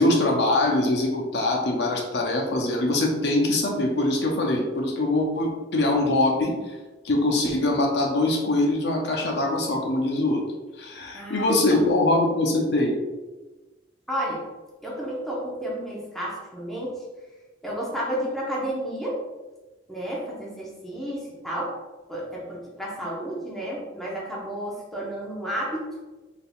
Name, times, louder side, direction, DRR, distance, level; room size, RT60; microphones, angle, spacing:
voice 1, 0.0-6.7 7.0-10.4 10.8-13.0, left 2 dB, 60° left, 0 dB, 0.6 m, -23 dB
voice 2, 11.1-11.8 14.1-14.5 14.8-17.0 17.6-19.2 19.9-21.7 22.1-26.0, equal, ahead, -6 dB, 0.9 m, -31 dB
4.4 x 3.5 x 2.4 m, 1.2 s
head